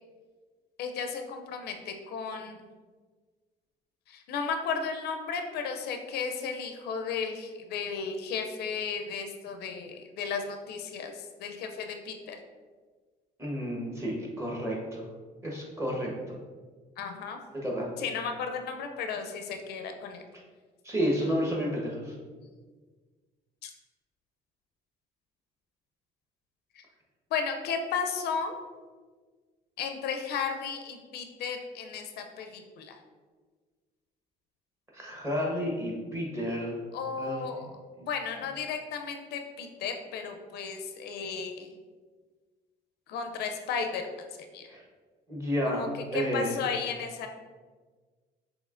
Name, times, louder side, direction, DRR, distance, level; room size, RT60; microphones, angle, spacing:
voice 1, 0.8-2.6 4.1-12.4 17.0-17.4 18.0-20.2 23.6-23.7 26.7-26.8 27.3-28.6 29.8-32.9 36.9-37.7 38.0-41.7 43.1-44.3 44.5-44.7 45.6-45.9 46.1-47.3, left 6 dB, 75° left, 5 dB, 0.5 m, -34 dB
voice 2, 13.4-15.0 15.4-16.1 17.5-17.9 20.8-22.1 34.9-36.8 37.2-37.6 44.7-44.8 45.3-46.6, equal, 15° right, -3 dB, 1.2 m, -31 dB
6.2 x 2.9 x 2.5 m, 1.5 s
cardioid pair, 110°, 17 cm